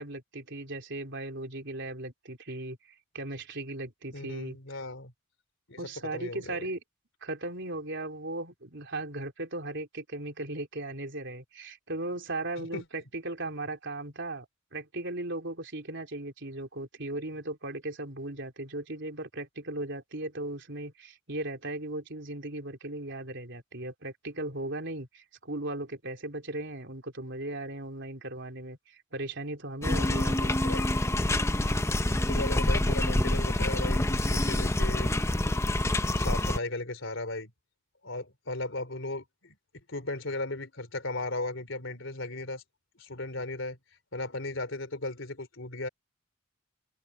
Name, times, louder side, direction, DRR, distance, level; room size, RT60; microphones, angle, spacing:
voice 1, 0.0-2.8 3.1-4.6 5.8-6.8 7.2-14.5 14.7-30.5, right 2 dB, 60° right, 3.9 m, -37 dB
voice 2, 4.1-5.1 5.7-6.6 12.6-12.8 30.4-31.0 32.1-35.1 36.0-37.5 38.0-42.6 43.0-43.8 44.1-45.9, left 2 dB, 65° left, 3.6 m, -36 dB
sound 1, 29.8-36.6, left 1 dB, 15° left, 0.7 m, -26 dB
head